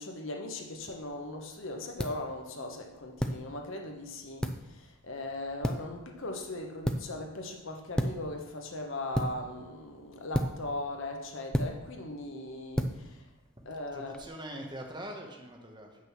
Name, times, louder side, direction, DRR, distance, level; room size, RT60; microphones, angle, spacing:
voice 1, 0.0-13.2 13.6-14.1, left 2 dB, 65° left, 3 dB, 1.3 m, -39 dB
sound 1, 0.8-14.3, equal, 5° left, 0.4 m, -37 dB
voice 2, 13.9-16.0, right 1 dB, 20° right, 2 dB, 1.1 m, -43 dB
7.7 x 6.3 x 6.0 m, 1.1 s
head